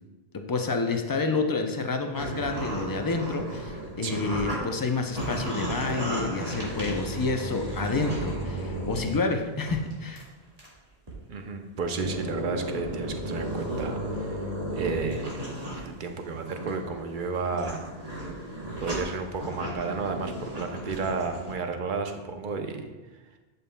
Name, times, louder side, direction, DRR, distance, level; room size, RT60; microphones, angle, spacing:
voice 1, 0.3-10.2, left 3 dB, 35° left, 5 dB, 0.4 m, -29 dB
sound 1, 2.1-4.6 4.9-9.2 9.7-9.9 10.2-10.3 10.6-10.7 11.1-11.2 11.8-15.8 16.2-21.5, right 1 dB, 40° right, 1.8 m, -34 dB
voice 2, 11.3-14.4 14.7-15.4 15.7-17.9 18.8-22.9, right 4 dB, 55° right, 5 dB, 0.8 m, -32 dB
11.0 x 5.4 x 2.2 m, 1.2 s
omnidirectional pair, 1.0 m